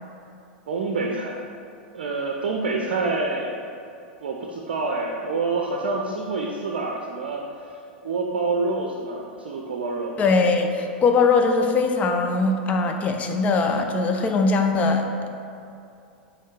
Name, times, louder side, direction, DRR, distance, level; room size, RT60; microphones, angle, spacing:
voice 1, 0.7-1.5 1.9-3.6 4.2-7.4 8.0-10.2, right 3 dB, 65° right, 1 dB, 0.6 m, -27 dB
voice 2, 10.2-15.3, left 4 dB, 25° left, 4 dB, 0.6 m, -21 dB
6.4 x 3.3 x 5.8 m, 2.5 s
figure-of-eight pair, 90°, 6 cm